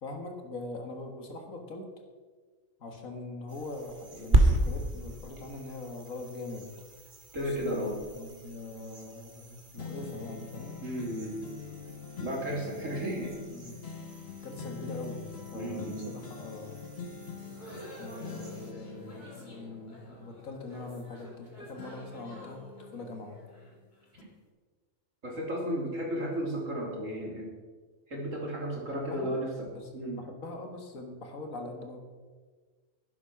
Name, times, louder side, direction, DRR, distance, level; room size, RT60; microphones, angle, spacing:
voice 1, 0.0-1.9 2.8-6.8 7.4-10.8 13.5-13.8 14.4-16.8 18.0-22.6 22.9-23.4 28.9-29.3 29.7-29.9 30.2-32.0, left 2 dB, 75° left, 3 dB, 2.0 m, -42 dB
sound 1, 3.5-18.7, right 2 dB, 35° right, 1.7 m, -35 dB
voice 2, 7.3-8.0 10.8-11.4 12.2-13.3 15.5-16.1 25.2-27.5 28.1-29.7 29.9-30.2, equal, 65° right, -2 dB, 3.3 m, -33 dB
sound 2, 9.8-21.4 21.8-23.7 24.2-24.3, left 5 dB, 50° left, 1.1 m, -45 dB
sound 3, 17.3-24.3, equal, 35° left, 2.7 m, -49 dB
11.0 x 10.5 x 5.8 m, 1.4 s
omnidirectional pair, 1.4 m